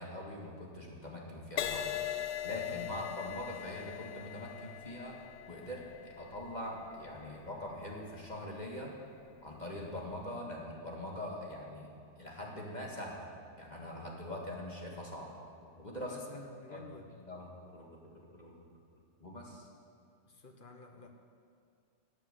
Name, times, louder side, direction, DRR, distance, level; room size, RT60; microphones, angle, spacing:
voice 1, 0.0-1.9 2.4-5.2 5.5-8.9 9.4-11.9 12.2-13.3 13.6-15.4 15.8-16.2 16.7-16.8 17.3-18.5 19.2-19.7, left 1 dB, 20° left, -2 dB, 1.8 m, -43 dB
Crash cymbal, 1.6-9.2 9.9-10.2, left 11 dB, 90° left, 1.6 m, -42 dB
voice 2, 2.7-3.0 15.9-17.1 20.3-21.1, left 3 dB, 35° left, 4 dB, 0.8 m, -51 dB
13.5 x 8.7 x 8.3 m, 2.2 s
omnidirectional pair, 2.3 m